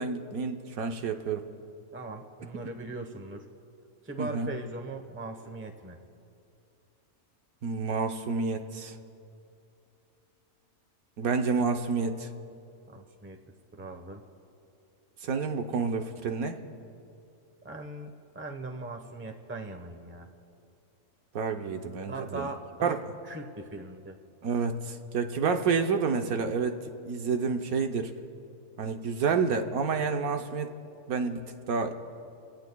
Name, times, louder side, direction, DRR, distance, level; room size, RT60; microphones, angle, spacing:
voice 1, 0.0-1.4 4.2-4.5 7.6-9.0 11.2-12.3 15.2-16.6 21.3-22.5 22.8-23.0 24.4-28.1 28.8-30.7 31.1-31.4 31.7-31.9, right 5 dB, 75° right, 5 dB, 1.3 m, -29 dB
voice 2, 1.9-3.5 4.0-6.0 12.9-13.4 13.7-14.2 17.6-20.3 22.1-24.2, right 2 dB, 10° right, 5 dB, 0.8 m, -40 dB
28.0 x 17.5 x 2.3 m, 2.6 s
omnidirectional pair, 1.6 m